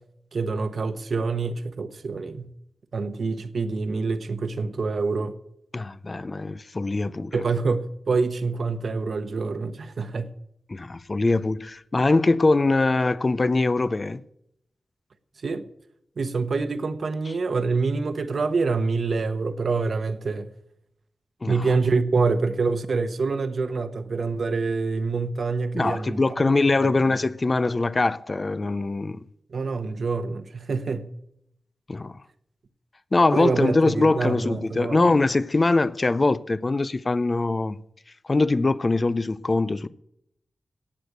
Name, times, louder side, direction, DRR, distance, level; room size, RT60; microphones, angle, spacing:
voice 1, 0.3-2.5 2.9-5.4 7.3-10.3 15.4-15.7 16.2-20.5 21.4-26.2 26.8-26.9 29.5-31.1 33.3-35.0, right 4 dB, 70° right, 1.1 m, -26 dB
voice 2, 5.7-7.4 10.7-14.2 21.4-21.7 25.7-29.2 31.9-32.2 33.1-37.8 38.3-39.9, left 3 dB, 35° left, 0.5 m, -22 dB
17.5 x 6.6 x 7.9 m
wide cardioid pair, 90°, 0 cm